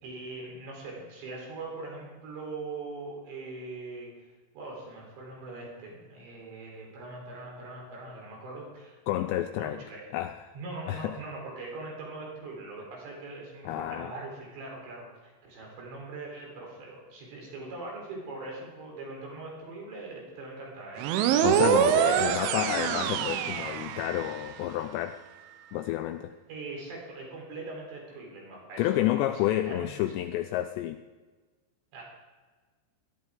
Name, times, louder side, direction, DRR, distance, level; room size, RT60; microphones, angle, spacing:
voice 1, 0.0-4.3 4.5-9.0 9.6-10.1 10.5-21.1 22.0-22.5 26.5-29.4 29.7-30.1 31.9-32.0, right 3 dB, 65° right, -2 dB, 5.8 m, -41 dB
voice 2, 9.1-9.8 10.1-10.5 10.9-11.2 13.7-14.1 21.4-25.2 25.7-26.3 28.8-31.0, left 13 dB, 85° left, 8 dB, 2.5 m, -30 dB
sound 1, 21.0-24.5, right 10 dB, 85° right, 3.2 m, -25 dB
17.5 x 13.0 x 3.7 m, 1.3 s
omnidirectional pair, 5.5 m